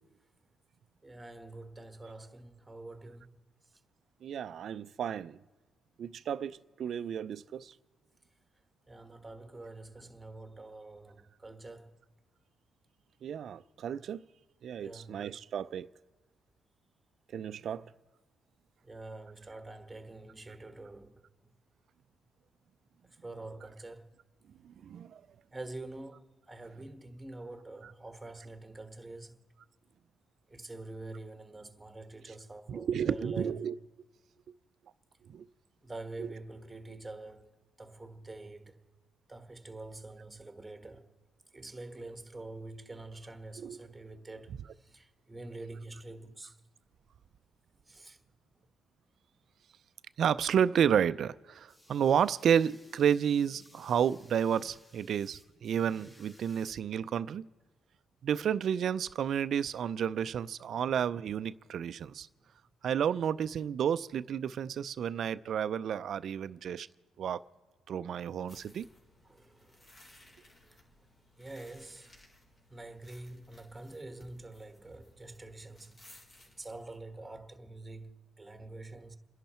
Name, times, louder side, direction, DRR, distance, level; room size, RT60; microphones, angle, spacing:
voice 1, 1.0-3.4 8.9-11.9 14.8-15.2 18.8-21.2 23.2-24.1 25.5-29.4 30.5-33.6 35.8-38.8 39.3-41.1 41.5-44.5 44.8-46.6 47.9-48.2 69.3-69.9 70.6-70.8 71.4-72.1 72.7-76.0 76.6-79.2, right 2 dB, 15° right, 1.4 m, -46 dB
voice 2, 4.2-5.4 6.0-7.7 13.2-14.2 14.6-15.9 17.3-17.8 24.6-25.2 27.8-27.9 32.7-33.7 35.3-35.5 36.2-36.3 43.6-43.8 50.2-57.5 58.2-62.3 62.8-66.9 67.2-67.4 67.9-68.9, right 8 dB, 60° right, 0.5 m, -31 dB
sound 1, 51.5-56.7, left 1 dB, 25° left, 3.1 m, -61 dB
sound 2, 68.5-77.0, left 1 dB, 40° left, 4.1 m, -60 dB
29.0 x 11.0 x 4.4 m
cardioid pair, 90°, 0 cm